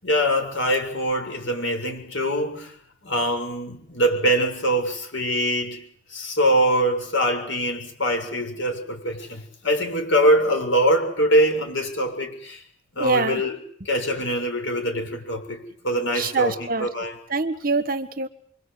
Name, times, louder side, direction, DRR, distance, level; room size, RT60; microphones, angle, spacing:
voice 1, 0.0-2.7 3.0-5.8 6.1-12.6 12.9-13.6 13.8-17.2, equal, 75° left, 6.8 m, -23 dB
voice 2, 13.0-13.4 16.2-16.9 17.3-18.3, right 3 dB, 45° right, 1.5 m, -24 dB
27.5 x 23.5 x 8.5 m
head